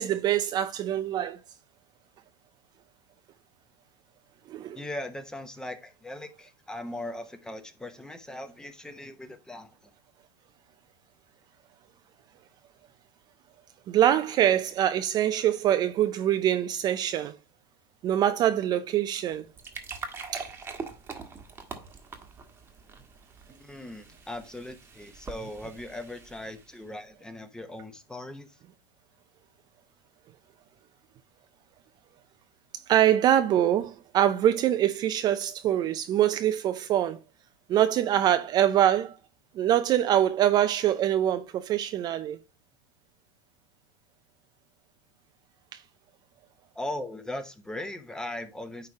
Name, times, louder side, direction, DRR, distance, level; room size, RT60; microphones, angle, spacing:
voice 1, 0.0-1.4 4.5-4.8 13.9-17.3 18.0-19.5 20.3-20.4 32.9-37.2 37.7-39.2 39.6-42.4 45.7-45.8, right 11 dB, 35° right, 0.5 m, -24 dB
voice 2, 4.7-9.7 23.6-28.5 46.8-48.9, left 1 dB, 5° left, 0.9 m, -39 dB
sound 1, 19.4-26.9, right 4 dB, 15° right, 1.3 m, -43 dB
9.3 x 3.2 x 4.8 m
supercardioid pair, 125°, 12 cm